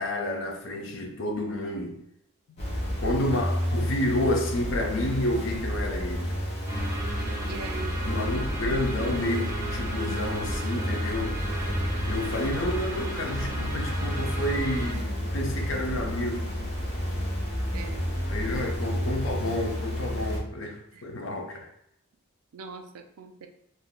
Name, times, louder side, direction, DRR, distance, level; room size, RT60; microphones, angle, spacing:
voice 1, 0.0-2.0 2.6-2.7 3.0-6.2 8.0-11.4 12.0-16.5 18.3-21.7, left 1 dB, 60° left, 0.5 m, -30 dB
sound 1, 2.6-20.4, equal, 30° left, 0.8 m, -31 dB
sound 2, 6.7-14.9, right 1 dB, 15° right, 0.5 m, -36 dB
voice 2, 7.4-8.0 17.7-18.1 20.9-21.0 22.5-23.5, right 4 dB, 90° right, 0.4 m, -41 dB
2.6 x 2.1 x 3.8 m
head